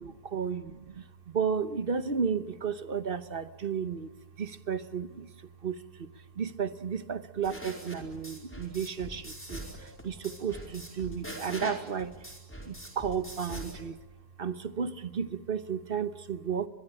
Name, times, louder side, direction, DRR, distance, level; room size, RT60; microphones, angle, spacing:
voice 1, 0.0-4.1 4.4-5.3 5.6-6.1 6.4-12.1 12.7-14.0 14.4-16.7, right 6 dB, 40° right, 13 dB, 1.0 m, -33 dB
sound 1, 7.4-13.8, equal, 5° left, 4.6 m, -43 dB
22.5 x 22.0 x 9.9 m, 1.3 s
omnidirectional pair, 1.7 m